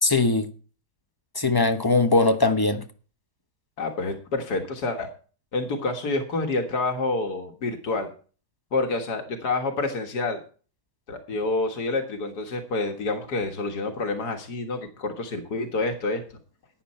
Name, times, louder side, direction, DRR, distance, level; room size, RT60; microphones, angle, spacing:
voice 1, 0.0-0.5 1.3-2.8, left 3 dB, 15° left, 1.0 m, -20 dB
voice 2, 3.8-5.1 5.5-8.1 8.7-10.4 11.1-16.2, left 3 dB, 90° left, 2.1 m, -28 dB
13.0 x 9.4 x 4.3 m
omnidirectional pair, 1.7 m